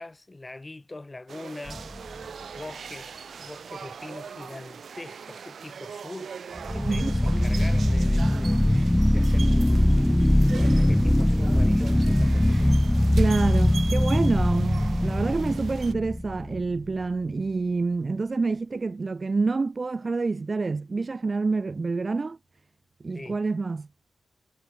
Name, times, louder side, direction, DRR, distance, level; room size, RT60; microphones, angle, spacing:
voice 1, 0.0-2.3 2.6-6.3 6.7-12.8 23.1-23.4, left 2 dB, 25° left, 5.2 m, -43 dB
sound 1, 1.3-15.9, right 6 dB, 70° right, 1.9 m, -41 dB
sound 2, 1.7-2.2 6.6-16.8, left 1 dB, 10° left, 1.8 m, -22 dB
voice 2, 6.9-7.2 13.1-22.4 23.0-23.9, right 3 dB, 40° right, 2.1 m, -27 dB
cardioid pair, 75°, 0 cm